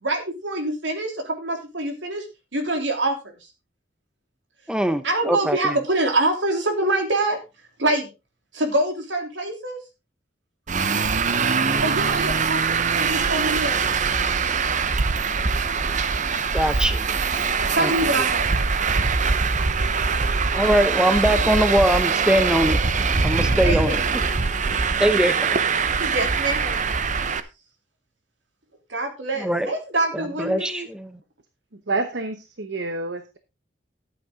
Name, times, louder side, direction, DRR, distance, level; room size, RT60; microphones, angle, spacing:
voice 1, 0.0-2.3 2.5-3.4 5.0-7.4 7.8-8.1 8.5-9.8 11.8-14.0 17.7-19.0 23.6-24.0 26.0-26.8 28.9-30.9, right 2 dB, 85° right, 5 dB, 3.1 m, -25 dB
voice 2, 4.7-5.7 16.5-17.1 17.8-17.9 20.5-22.8 23.2-24.0 25.0-25.3 29.4-29.7 30.1-31.2, equal, 5° right, 11 dB, 0.8 m, -22 dB
Traffic noise roadway noise, 10.7-27.4, right 5 dB, 45° right, 0.8 m, -22 dB
voice 3, 31.7-33.4, right 3 dB, 70° right, 8 dB, 1.1 m, -28 dB
12.5 x 8.5 x 3.7 m, 0.27 s
head